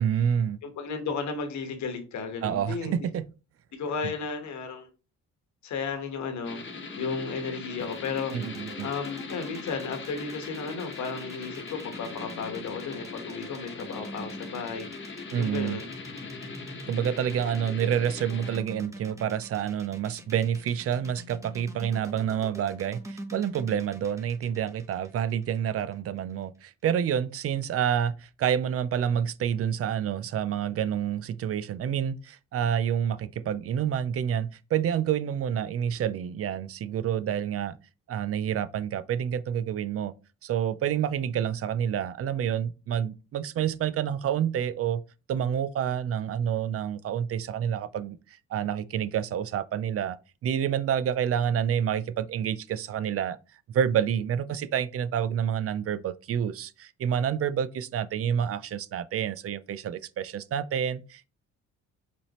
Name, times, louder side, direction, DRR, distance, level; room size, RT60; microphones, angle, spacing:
voice 1, 0.0-0.6 2.4-3.2 4.0-4.1 8.3-8.9 15.3-15.8 16.9-37.8 38.1-40.1 40.4-45.0 45.3-50.2 50.4-53.4 53.7-61.3, right 9 dB, 50° right, 0.5 m, -28 dB
voice 2, 0.6-3.0 3.7-4.9 5.6-6.6 7.0-8.3 8.8-15.9, left 5 dB, 70° left, 1.2 m, -34 dB
sound 1, 6.4-18.6, left 4 dB, 40° left, 1.1 m, -41 dB
sound 2, 7.8-25.9, right 1 dB, 10° right, 1.1 m, -45 dB
5.2 x 3.4 x 2.9 m
cardioid pair, 90°, 30 cm